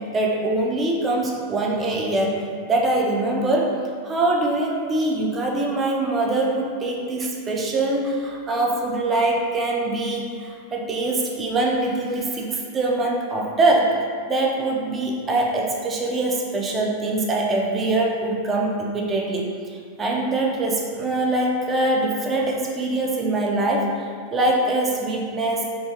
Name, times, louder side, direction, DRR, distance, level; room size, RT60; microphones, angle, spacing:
voice 1, 0.1-3.7 4.0-13.9 14.3-23.9 24.3-25.7, right 2 dB, 20° right, -2 dB, 0.4 m, -23 dB
2.8 x 2.2 x 2.8 m, 2.2 s
figure-of-eight pair, 90°, 0 cm